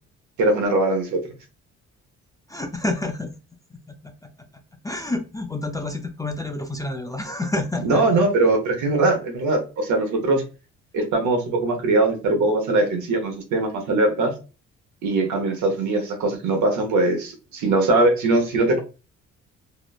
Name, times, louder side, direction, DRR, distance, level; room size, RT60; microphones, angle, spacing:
voice 1, 0.4-1.2 7.8-10.4 10.9-14.3 15.0-18.8, right 2 dB, 75° right, 4 dB, 0.8 m, -21 dB
voice 2, 2.5-3.3 3.7-4.3 4.8-8.2, left 2 dB, 10° left, 4 dB, 0.4 m, -29 dB
2.9 x 2.0 x 2.3 m, 0.32 s
cardioid pair, 90°, 30 cm